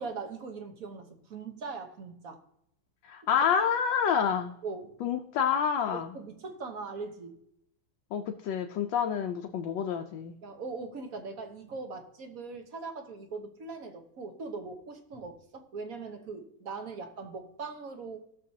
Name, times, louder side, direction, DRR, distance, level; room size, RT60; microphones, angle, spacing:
voice 1, 0.0-2.4 4.6-5.0 5.9-7.4 10.4-18.2, right 4 dB, 50° right, 5 dB, 1.4 m, -40 dB
voice 2, 3.0-4.5 5.0-6.1 8.1-10.3, left 7 dB, 80° left, 4 dB, 1.4 m, -28 dB
17.5 x 6.7 x 2.8 m, 0.77 s
omnidirectional pair, 2.0 m